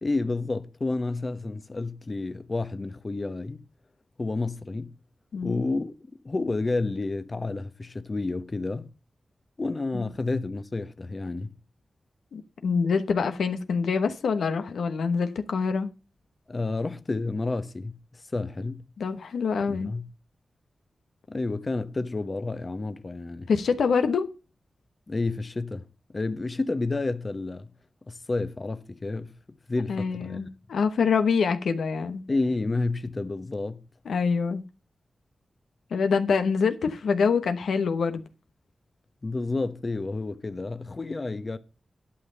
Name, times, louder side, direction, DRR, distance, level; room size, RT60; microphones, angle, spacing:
voice 1, 0.0-3.6 4.2-4.9 5.4-5.9 6.2-8.9 9.6-11.5 16.5-18.8 19.6-20.1 21.3-23.5 25.1-25.8 26.1-27.7 28.1-29.4 29.7-30.4 32.3-33.8 39.2-41.6, left 3 dB, 40° left, 0.9 m, -30 dB
voice 2, 5.3-5.6 9.9-10.1 12.3-15.9 19.0-19.9 23.5-24.2 29.9-32.2 34.0-34.6 35.9-38.2, left 5 dB, 90° left, 1.1 m, -25 dB
11.5 x 5.5 x 6.9 m
cardioid pair, 55°, 0 cm